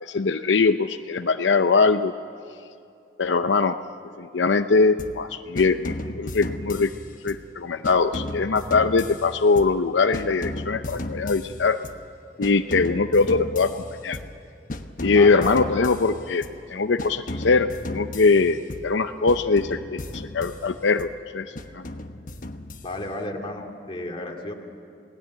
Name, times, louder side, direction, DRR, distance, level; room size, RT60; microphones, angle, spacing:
voice 1, 0.0-2.1 3.2-3.8 4.2-6.9 7.2-11.8 12.4-14.2 15.0-21.1 21.3-21.8, left 4 dB, 80° left, 9 dB, 0.6 m, -22 dB
sound 1, 5.0-5.3 5.6-7.5 7.8-9.9 10.1-12.1 12.4-14.4 14.7-16.6 17.0-19.0 19.3-21.2 21.6-23.2, left 1 dB, 50° left, 1.1 m, -35 dB
voice 2, 15.1-15.5 22.8-24.5, left 1 dB, 30° left, 1 dB, 2.5 m, -33 dB
27.5 x 18.5 x 8.5 m, 2.5 s
head